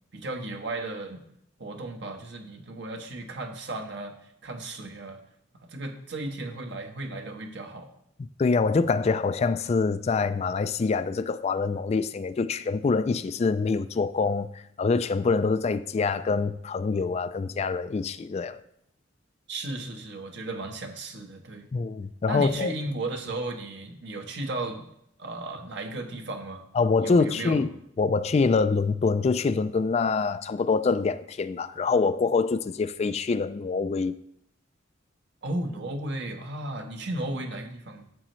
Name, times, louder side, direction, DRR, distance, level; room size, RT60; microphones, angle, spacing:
voice 1, 0.1-1.2 1.6-4.1 4.4-5.2 5.7-7.9 19.5-21.7 22.3-24.9 25.2-26.6 27.0-27.6 35.4-38.1, right 2 dB, 65° right, 1.2 m, -35 dB
voice 2, 8.4-18.6 21.7-22.7 26.7-27.7 28.0-34.1, left 4 dB, 35° left, 0.3 m, -25 dB
11.0 x 7.8 x 3.1 m
head